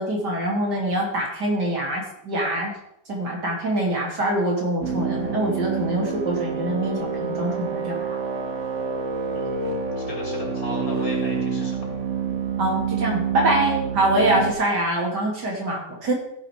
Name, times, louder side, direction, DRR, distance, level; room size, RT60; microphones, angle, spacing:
voice 1, 0.0-2.8 3.1-8.2 12.6-16.1, right 1 dB, 70° right, -2 dB, 3.1 m, -24 dB
sound 1, 4.8-14.5, right 5 dB, 45° right, 1.4 m, -27 dB
voice 2, 9.3-11.9 14.2-14.3, left 1 dB, 50° left, -1 dB, 3.5 m, -36 dB
16.0 x 5.3 x 4.5 m, 0.76 s
omnidirectional pair, 1.9 m